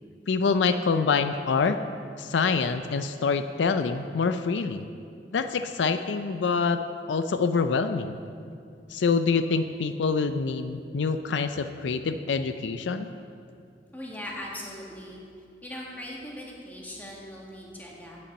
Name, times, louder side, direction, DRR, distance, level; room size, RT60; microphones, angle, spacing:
voice 1, 0.3-1.8 2.2-4.9 5.3-8.2 8.9-13.1, left 5 dB, 80° left, 9 dB, 0.4 m, -26 dB
voice 2, 13.9-15.2 15.6-18.2, left 1 dB, 10° left, -3 dB, 1.6 m, -40 dB
8.6 x 8.5 x 7.0 m, 2.4 s
head